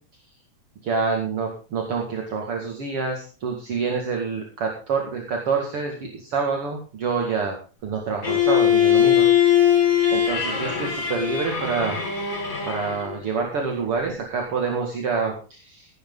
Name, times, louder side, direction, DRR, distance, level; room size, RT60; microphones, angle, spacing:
voice 1, 0.8-7.5 7.8-9.6 10.1-12.0 12.6-15.9, right 5 dB, 50° right, 1 dB, 2.9 m, -27 dB
Bowed string instrument, 8.2-13.2, left 10 dB, 30° left, 3.7 m, -20 dB
16.5 x 11.5 x 3.9 m, 0.35 s
omnidirectional pair, 3.3 m